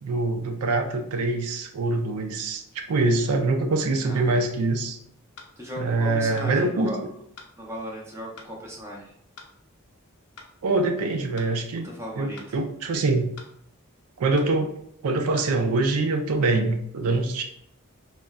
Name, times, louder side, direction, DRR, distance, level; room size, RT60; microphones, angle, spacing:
voice 1, 0.0-2.6 2.9-5.0 5.8-7.1 10.6-11.9 12.2-13.3 14.2-14.7 15.0-17.4, right 3 dB, 90° right, 5 dB, 0.4 m, -24 dB
voice 2, 4.0-4.4 5.6-7.0 7.6-9.1 11.8-12.6 12.9-13.0, equal, 10° right, -3 dB, 0.6 m, -37 dB
sound 1, 5.4-5.5 6.4-6.5 7.4-7.5 8.4-8.5 9.4-9.5 10.4-10.5 11.4-11.5 12.4-12.5 13.4-13.5 14.4-14.5 15.4-15.5, left 4 dB, 90° left, 0.5 m, -45 dB
3.6 x 2.1 x 2.2 m, 0.71 s
head